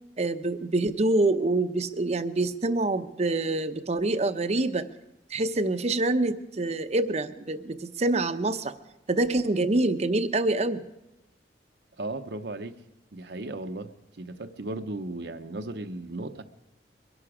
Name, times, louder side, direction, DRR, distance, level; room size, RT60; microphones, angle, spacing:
voice 1, 0.2-4.8 5.3-8.7 9.1-10.9, right 2 dB, 40° right, 11 dB, 0.7 m, -26 dB
voice 2, 12.0-12.7 13.1-13.9 14.2-16.4, right 2 dB, 70° right, 7 dB, 0.8 m, -35 dB
23.0 x 11.0 x 4.9 m, 0.91 s
head